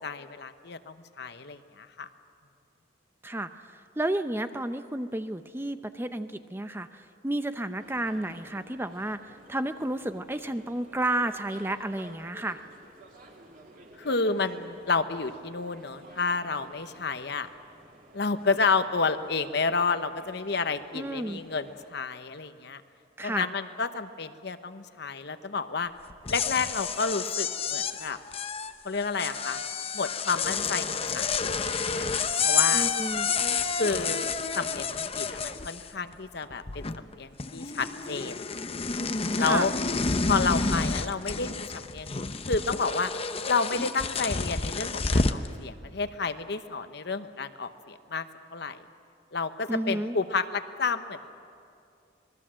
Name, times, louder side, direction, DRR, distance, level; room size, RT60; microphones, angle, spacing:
voice 1, 0.0-2.1 14.0-17.5 18.1-22.8 23.2-25.9 26.3-28.2 28.8-29.6 29.9-31.3 31.6-32.9 33.8-38.5 39.4-39.7 40.3-42.1 42.5-43.1 43.5-48.3 48.5-48.8 49.3-51.2, left 4 dB, 60° left, 10 dB, 1.0 m, -30 dB
voice 2, 3.2-12.6 20.9-21.4 23.2-23.5 32.7-33.3 39.4-39.7 49.7-50.2, right 1 dB, 10° right, 9 dB, 0.6 m, -32 dB
sound 1, 7.7-21.9, right 1 dB, 45° right, 2.7 m, -53 dB
sound 2, 26.1-36.1 36.4-37.1 37.4-45.5, left 5 dB, 30° left, 0.7 m, -29 dB
26.5 x 20.0 x 7.6 m, 2.4 s
head